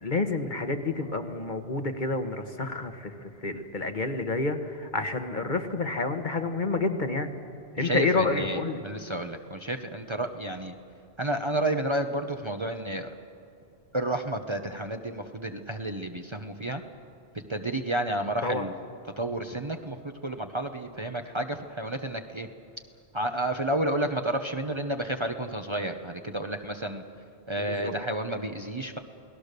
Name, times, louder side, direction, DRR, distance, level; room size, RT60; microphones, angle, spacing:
voice 1, 0.0-7.3 7.7-8.8 18.4-18.6 27.6-27.9, left 3 dB, 45° left, 6 dB, 1.4 m, -29 dB
voice 2, 7.8-10.7 11.2-13.1 13.9-16.8 17.5-18.7 19.2-22.5 23.1-27.0 27.5-29.0, right 1 dB, 30° right, 5 dB, 0.9 m, -31 dB
29.0 x 19.0 x 6.8 m, 2.7 s
omnidirectional pair, 1.1 m